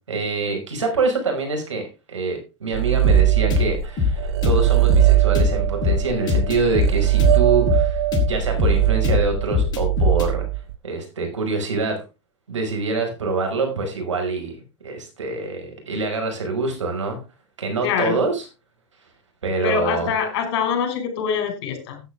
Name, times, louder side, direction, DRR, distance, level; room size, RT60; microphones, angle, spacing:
voice 1, 0.1-8.0 8.3-10.5 10.8-12.0 12.5-14.6 14.8-17.2 17.6-18.5 19.4-20.1, right 3 dB, 85° right, 3 dB, 5.5 m, -25 dB
sound 1, 2.7-3.9 4.2-10.8, right 20 dB, 60° right, 0.6 m, -20 dB
sound 2, 3.0-10.3, left 5 dB, 30° left, 4.5 m, -22 dB
voice 2, 17.8-18.2 19.6-22.0, left 6 dB, 55° left, 5 dB, 5.2 m, -24 dB
14.0 x 9.5 x 3.6 m, 0.29 s
hypercardioid pair, 105°, 15 cm